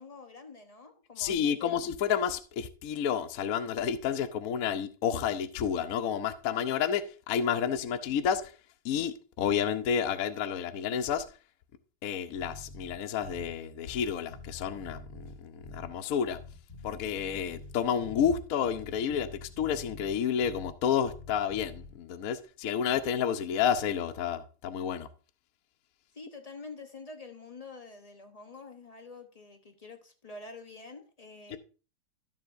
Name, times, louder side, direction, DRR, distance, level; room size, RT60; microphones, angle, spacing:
voice 1, 0.0-1.9 26.1-31.6, left 3 dB, 40° left, 0.5 m, -47 dB
voice 2, 1.2-8.5 8.8-11.2 12.0-16.4 16.8-25.1 31.5-31.6, left 8 dB, 65° left, 0.9 m, -30 dB
Bass guitar, 12.3-13.6 13.8-16.0 16.2-18.4 18.6-20.8 21.0-21.9, left 2 dB, 20° left, 2.0 m, -46 dB
13.5 x 7.2 x 2.6 m
omnidirectional pair, 2.3 m